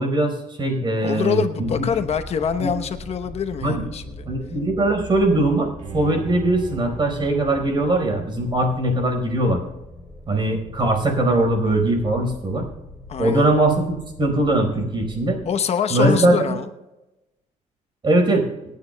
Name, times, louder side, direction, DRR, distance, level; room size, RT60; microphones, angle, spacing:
voice 1, 0.0-1.8 2.6-2.7 3.6-3.8 4.3-9.6 10.3-12.7 13.2-13.8 14.2-15.4 15.9-16.6 18.0-18.5, right 1 dB, 40° right, 4 dB, 4.5 m, -20 dB
voice 2, 1.0-4.3 13.1-13.5 15.4-16.7, left 7 dB, 55° left, 8 dB, 0.9 m, -25 dB
sound 1, 1.6-15.5, equal, ahead, 3.3 m, -40 dB
Bowed string instrument, 5.8-8.9 9.3-9.4, right 3 dB, 60° right, 1.6 m, -40 dB
26.5 x 9.5 x 2.2 m, 0.98 s
cardioid pair, 105°, 13 cm